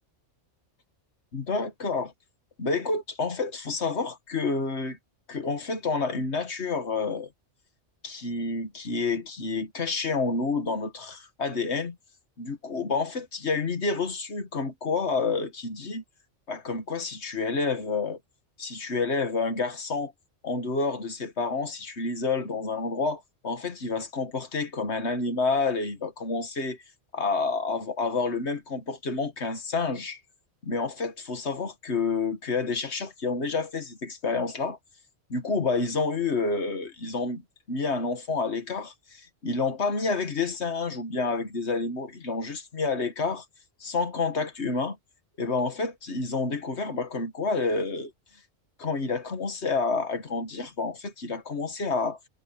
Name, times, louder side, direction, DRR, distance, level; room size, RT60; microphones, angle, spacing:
voice 1, 1.3-2.1 2.6-5.0 5.3-7.3 8.0-12.0 12.4-16.0 16.5-18.2 18.6-20.1 20.4-26.8 27.1-30.2 30.6-34.8 35.3-43.5 43.8-45.0 45.4-48.1 48.8-52.2, left 4 dB, 65° left, 2.1 m, -29 dB
omnidirectional pair, 1.2 m